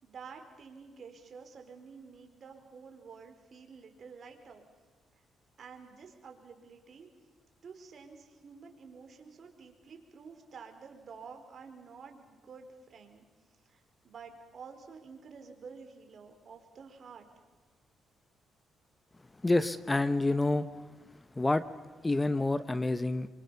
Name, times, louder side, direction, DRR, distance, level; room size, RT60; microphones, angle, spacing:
voice 1, 0.0-4.6 5.6-7.1 7.6-13.2 13.7-13.8 14.0-17.3, right 5 dB, 50° right, 5 dB, 4.4 m, -50 dB
voice 2, 19.4-20.7 21.4-21.7 22.0-23.3, left 2 dB, 15° left, 14 dB, 0.9 m, -28 dB
28.0 x 24.0 x 7.0 m, 1.4 s
cardioid pair, 90°, 0 cm